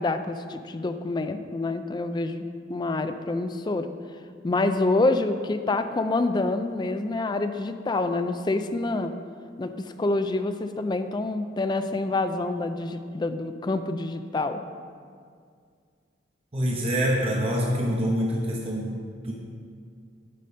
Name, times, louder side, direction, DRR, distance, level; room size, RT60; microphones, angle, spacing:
voice 1, 0.0-2.4 2.7-3.9 4.4-9.1 9.6-14.6, left 2 dB, 20° left, 9 dB, 0.3 m, -27 dB
voice 2, 16.5-19.3, equal, 30° right, -3 dB, 0.8 m, -26 dB
8.4 x 5.1 x 5.2 m, 2.2 s
head